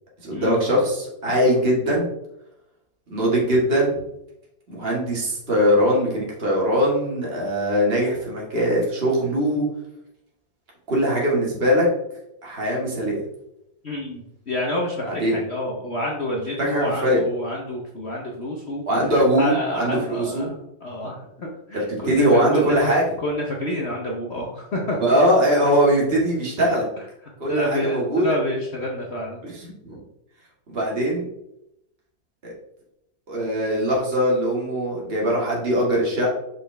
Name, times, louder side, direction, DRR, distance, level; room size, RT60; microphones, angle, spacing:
voice 1, 0.2-2.1 3.1-3.9 4.7-9.7 10.9-11.9 12.4-13.2 15.0-15.4 16.7-17.2 18.9-20.5 22.0-23.0 25.0-26.9 27.4-28.2 29.4-30.0 30.7-31.3 32.4-32.5 33.3-36.3, equal, 30° right, -4 dB, 2.3 m, -21 dB
voice 2, 13.8-18.8 19.4-20.5 20.8-22.9 23.2-25.0 27.0-27.1 27.5-29.4, left 1 dB, 45° left, -1 dB, 1.0 m, -28 dB
6.1 x 5.5 x 3.4 m, 0.83 s
omnidirectional pair, 1.9 m